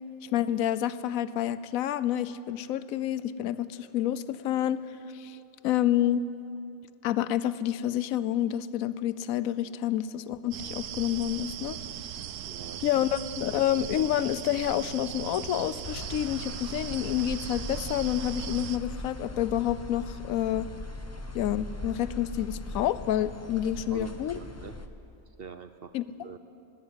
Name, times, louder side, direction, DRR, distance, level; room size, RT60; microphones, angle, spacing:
voice 1, 0.2-4.8 5.1-5.4 5.6-6.2 7.0-11.8 12.8-20.7 21.3-24.4 25.9-26.0, left 11 dB, 70° left, 15 dB, 1.1 m, -28 dB
sound 1, 10.5-18.8, right 10 dB, 85° right, 1.2 m, -38 dB
voice 2, 12.4-12.9 13.4-13.6 23.9-24.7 25.4-25.9 26.2-26.4, right 6 dB, 55° right, 10 dB, 0.7 m, -44 dB
sound 2, 15.8-24.9, left 2 dB, 15° left, 0.6 m, -40 dB
19.0 x 18.0 x 8.3 m, 2.6 s
omnidirectional pair, 1.6 m